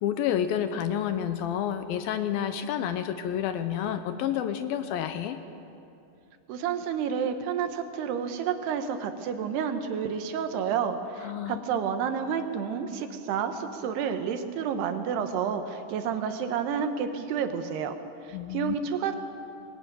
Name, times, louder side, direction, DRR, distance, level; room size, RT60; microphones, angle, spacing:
voice 1, 0.0-5.4 11.2-11.6 18.3-18.8, left 9 dB, 80° left, 9 dB, 2.4 m, -29 dB
voice 2, 6.5-17.9 18.5-19.2, right 7 dB, 80° right, 7 dB, 3.2 m, -30 dB
21.0 x 17.5 x 9.1 m, 2.7 s
omnidirectional pair, 4.6 m